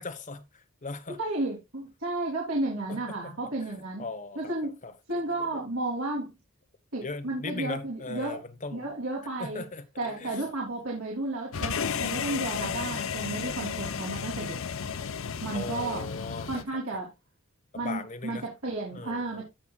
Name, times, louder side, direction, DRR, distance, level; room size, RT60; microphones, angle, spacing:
voice 1, 0.0-1.2 2.9-3.3 4.0-4.9 5.4-5.6 7.0-8.8 9.4-10.4 15.5-16.8 17.7-18.4 18.9-19.4, left 3 dB, 35° left, 1.2 m, -39 dB
voice 2, 1.2-4.0 4.4-4.7 5.1-6.3 6.9-8.4 8.7-9.7 10.0-14.6 15.4-16.0 16.5-17.1 17.7-19.4, right 2 dB, 85° right, 3.5 m, -32 dB
sound 1, 11.5-16.6, left 6 dB, 65° left, 0.7 m, -33 dB
16.5 x 5.8 x 2.4 m
head